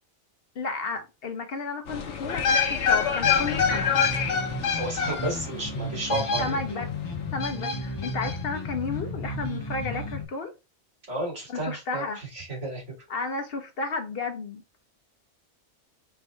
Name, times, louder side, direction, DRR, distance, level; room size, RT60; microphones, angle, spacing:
voice 1, 0.5-3.9 6.4-6.9 7.3-10.5 11.5-12.2 13.1-14.6, left 4 dB, 60° left, 0.9 m, -33 dB
sound 1, 1.9-6.9 7.4-8.3 8.6-8.7, left 6 dB, 80° left, 1.1 m, -26 dB
sound 2, 3.2-10.2, left 2 dB, 25° left, 0.7 m, -34 dB
voice 2, 4.8-6.6 11.1-12.8, right 2 dB, 80° right, 2.7 m, -32 dB
4.6 x 2.7 x 3.3 m
omnidirectional pair, 1.2 m